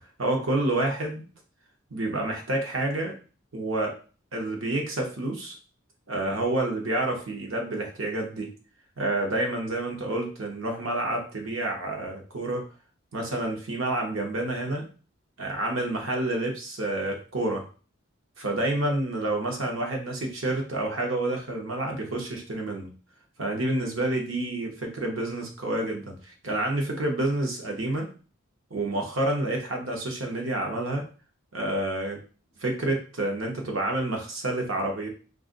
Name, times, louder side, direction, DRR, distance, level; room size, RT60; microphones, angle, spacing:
voice 1, 0.2-1.2 1.9-3.2 3.5-4.0 4.3-5.6 6.1-8.5 9.0-12.6 13.1-14.9 15.4-17.7 18.4-22.9 23.4-28.1 28.7-31.1 31.5-32.2 32.6-35.1, right 1 dB, 75° right, 1 dB, 0.9 m, -29 dB
2.5 x 2.5 x 3.8 m, 0.37 s
head